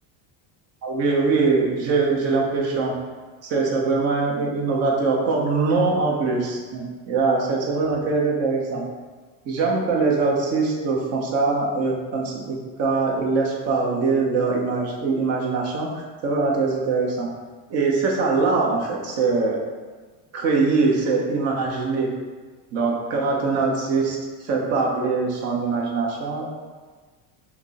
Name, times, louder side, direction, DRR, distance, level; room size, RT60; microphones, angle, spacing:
voice 1, 0.8-2.9 3.4-8.8 9.5-17.3 17.7-19.6 20.3-22.1 22.7-24.2 24.4-26.5, right 4 dB, 30° right, -2 dB, 0.7 m, -22 dB
5.8 x 2.0 x 4.0 m, 1.4 s
cardioid pair, 175°, 49 cm